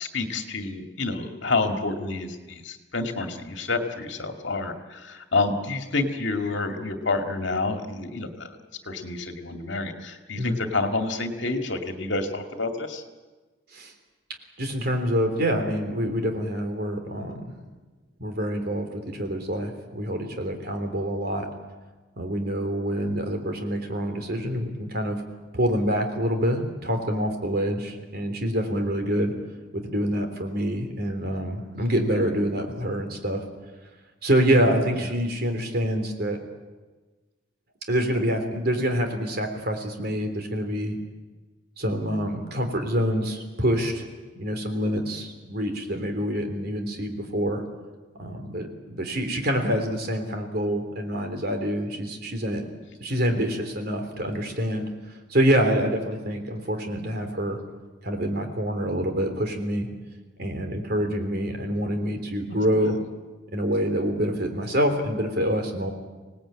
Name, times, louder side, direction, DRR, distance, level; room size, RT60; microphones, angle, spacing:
voice 1, 0.0-8.6 8.9-13.0 34.9-35.1 45.8-45.9 53.3-53.4 62.8-62.9, left 3 dB, 65° left, 5 dB, 2.3 m, -29 dB
voice 2, 14.6-17.4 18.2-21.5 22.2-25.2 25.5-29.3 29.7-33.4 34.2-36.4 37.9-41.0 41.8-44.1 44.4-47.6 48.2-52.6 53.0-54.9 55.3-57.6 58.0-59.9 60.4-63.0 63.5-65.9, equal, 50° right, 5 dB, 3.5 m, -26 dB
25.5 x 18.5 x 8.8 m, 1.3 s
head